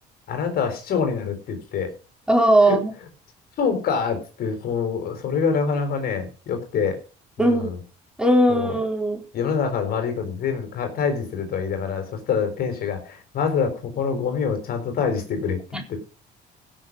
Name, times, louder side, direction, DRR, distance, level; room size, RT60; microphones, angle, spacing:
voice 1, 0.3-1.9 2.7-2.8 3.6-7.0 7.4-7.8 8.5-8.7 9.3-15.6 15.9-16.0, left 6 dB, 65° left, 6 dB, 4.3 m, -25 dB
voice 2, 2.3-2.9 7.4-7.7 8.2-9.2 15.7-16.0, right 1 dB, 5° right, 2 dB, 4.0 m, -19 dB
16.0 x 6.7 x 6.3 m, 0.36 s
cardioid pair, 110°, 17 cm